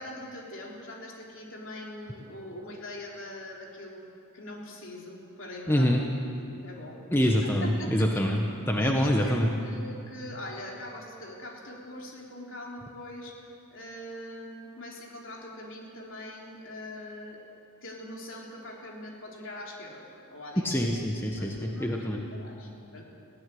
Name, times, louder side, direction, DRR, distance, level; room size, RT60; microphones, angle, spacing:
voice 1, 0.0-4.0 4.3-6.0 6.4-7.5 7.8-8.2 8.8-17.4 17.8-20.1 20.3-20.8 21.4-21.9 22.3-23.0, left 1 dB, 60° left, -2 dB, 3.6 m, -42 dB
voice 2, 5.7-6.0 7.1-9.5 20.6-22.2, equal, 10° left, 1 dB, 1.1 m, -25 dB
21.5 x 16.0 x 7.7 m, 2.7 s
head